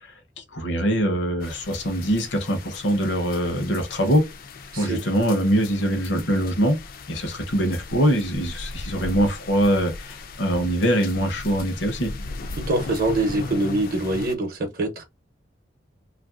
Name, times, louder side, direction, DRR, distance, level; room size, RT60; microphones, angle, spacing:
voice 1, 0.4-4.2 4.7-6.8 7.1-12.1, equal, 70° left, 0.8 m, -23 dB
sound 1, 1.4-14.3, left 3 dB, 50° left, 0.4 m, -37 dB
voice 2, 4.7-5.0 12.5-15.0, right 2 dB, 50° right, 0.7 m, -24 dB
3.0 x 2.5 x 2.4 m
head